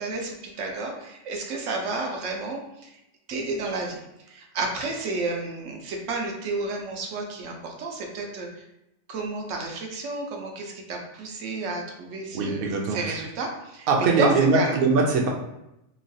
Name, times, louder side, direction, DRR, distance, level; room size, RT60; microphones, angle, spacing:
voice 1, 0.0-3.0 3.3-4.0 4.3-8.6 9.1-14.8, right 3 dB, 85° right, 1 dB, 0.9 m, -31 dB
voice 2, 12.3-13.0 13.9-15.3, right 3 dB, 60° right, 0 dB, 0.7 m, -21 dB
3.0 x 2.3 x 2.6 m, 0.87 s
omnidirectional pair, 1.3 m